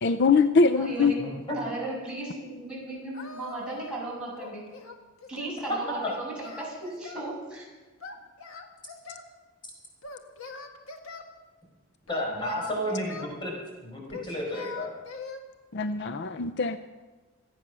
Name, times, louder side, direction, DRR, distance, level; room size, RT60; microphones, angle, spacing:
voice 1, 0.0-1.1 15.7-16.8, left 4 dB, 55° left, 11 dB, 0.5 m, -22 dB
voice 2, 0.6-4.6 5.3-7.7, right 2 dB, 5° right, -6 dB, 7.4 m, -36 dB
voice 3, 1.2-1.6 12.1-14.9, equal, 25° left, -2 dB, 5.2 m, -32 dB
Singing, 3.1-4.1 4.4-5.6 6.0-7.3 8.0-9.3 10.0-11.3 12.1-13.4 14.1-15.4, left 4 dB, 90° left, 1.7 m, -42 dB
26.0 x 9.0 x 6.2 m, 1.3 s
head